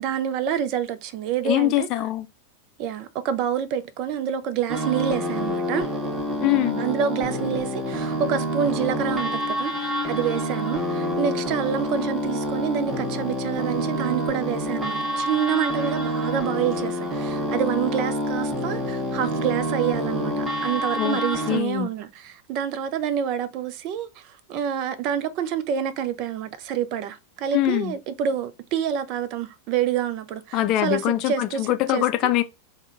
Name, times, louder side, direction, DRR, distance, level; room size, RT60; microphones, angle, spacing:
voice 1, 0.0-1.9 2.8-5.9 6.8-32.3, right 9 dB, 40° right, 0.4 m, -27 dB
voice 2, 1.4-2.3 6.4-6.8 21.0-21.2 21.5-21.9 27.5-27.9 30.5-32.4, left 15 dB, 40° left, 0.4 m, -23 dB
sound 1, 4.7-21.6, equal, 15° right, 1.3 m, -27 dB
3.5 x 2.2 x 3.7 m
figure-of-eight pair, 90°, 0 cm